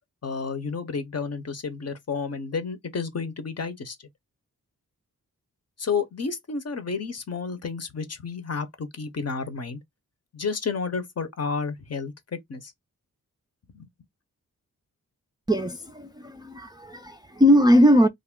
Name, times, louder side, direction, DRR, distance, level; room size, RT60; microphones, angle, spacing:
voice 1, 0.2-4.0 5.8-9.8 10.3-12.7 13.7-13.9, left 5 dB, 45° left, 0.7 m, -31 dB
voice 2, 15.5-18.1, equal, 10° right, 0.4 m, -19 dB
2.4 x 2.0 x 3.5 m
cardioid pair, 50°, 35 cm